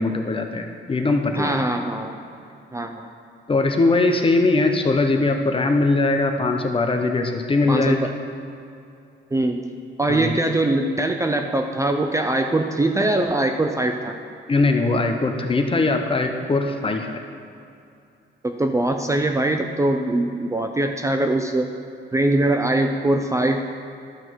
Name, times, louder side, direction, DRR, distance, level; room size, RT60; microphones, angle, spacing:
voice 1, 0.0-1.6 3.5-8.1 10.1-10.3 14.5-17.2, left 3 dB, 25° left, 5 dB, 0.9 m, -21 dB
voice 2, 1.4-2.2 2.7-3.1 7.7-8.1 9.3-9.6 10.0-14.2 18.4-21.7 22.1-23.6, right 2 dB, 15° right, 4 dB, 0.6 m, -22 dB
11.5 x 5.9 x 4.6 m, 2.6 s
cardioid pair, 90°, 20 cm